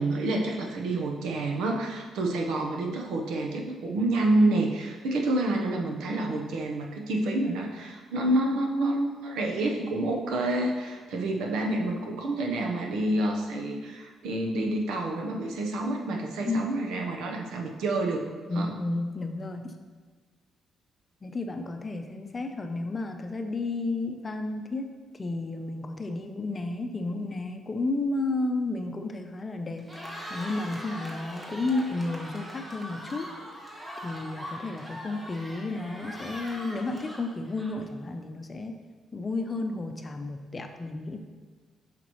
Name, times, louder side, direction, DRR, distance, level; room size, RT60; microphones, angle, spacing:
voice 1, 0.0-18.3 18.5-18.7, right 2 dB, 85° right, 1 dB, 0.9 m, -28 dB
voice 2, 18.5-19.7 21.2-24.9 25.1-33.3 34.0-38.8 39.1-41.2, left 2 dB, 30° left, 6 dB, 0.7 m, -32 dB
Cheering, 29.7-38.0, equal, 15° right, 1.4 m, -41 dB
8.1 x 5.9 x 3.1 m, 1.5 s
cardioid pair, 90°, 0 cm